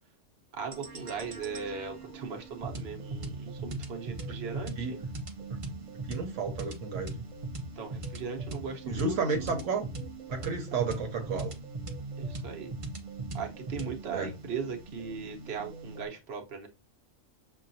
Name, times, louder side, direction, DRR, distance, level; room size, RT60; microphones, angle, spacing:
voice 1, 0.6-5.0 7.8-9.5 12.2-12.7 13.3-16.7, right 6 dB, 55° right, 1.1 m, -38 dB
sound 1, 0.7-16.1, right 2 dB, 35° right, 0.5 m, -40 dB
voice 2, 6.1-7.2 8.8-9.9 10.3-11.5 14.1-14.3, right 4 dB, 80° right, 1.1 m, -32 dB
6.3 x 2.2 x 2.6 m
omnidirectional pair, 1.3 m